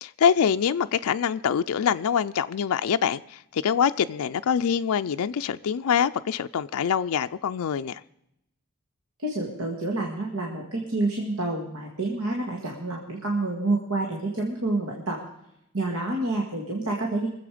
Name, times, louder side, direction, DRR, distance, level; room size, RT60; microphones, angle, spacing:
voice 1, 0.0-8.0, left 7 dB, 80° left, 0.4 m, -25 dB
voice 2, 9.2-15.2 15.7-17.3, right 2 dB, 75° right, 2.0 m, -28 dB
23.5 x 7.8 x 5.0 m
head